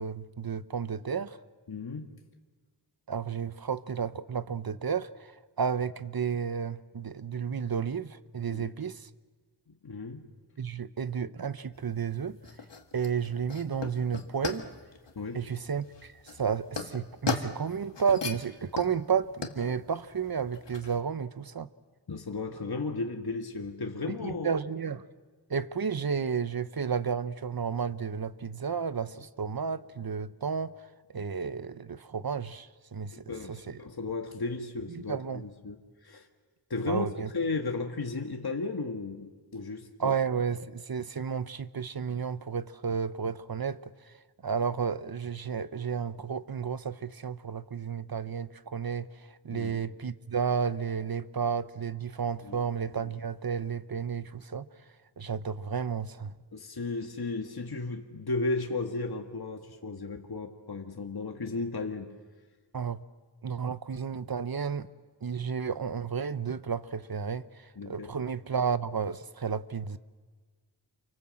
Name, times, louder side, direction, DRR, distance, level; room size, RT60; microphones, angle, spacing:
voice 1, 0.0-1.4 3.1-5.3 5.6-9.1 10.6-12.4 12.9-14.7 15.3-21.7 24.1-25.0 25.5-33.7 34.9-35.4 36.9-37.3 40.0-43.9 44.4-54.7 55.2-56.3 62.7-63.0 63.4-64.9 65.2-70.0, right 6 dB, 55° right, 1.0 m, -32 dB
voice 2, 1.7-2.1 8.5-8.7 9.7-10.3 15.1-15.4 22.1-24.6 33.1-36.3 36.7-37.0 37.3-40.1 49.5-49.8 52.4-52.7 53.0-53.1 56.5-62.2 67.8-68.2, left 3 dB, 60° left, 1.7 m, -35 dB
sound 1, 11.7-21.0, left 4 dB, 75° left, 1.9 m, -38 dB
29.0 x 24.5 x 7.7 m
wide cardioid pair, 60°, 43 cm